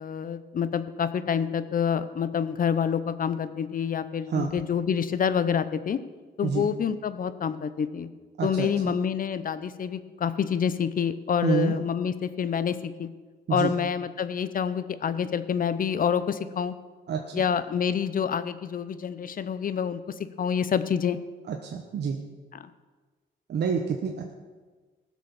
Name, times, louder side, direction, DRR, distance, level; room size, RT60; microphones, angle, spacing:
voice 1, 0.0-6.0 6.4-8.1 8.4-13.1 13.5-16.7 17.3-20.0 20.4-21.2 22.5-22.7, left 7 dB, 45° left, 13 dB, 0.8 m, -27 dB
voice 2, 8.4-8.9 11.4-11.7 13.5-13.7 17.1-17.4 21.5-22.2 23.5-24.3, right 6 dB, 60° right, 2 dB, 1.1 m, -28 dB
15.5 x 6.2 x 7.1 m, 1.4 s
cardioid pair, 90°, 20 cm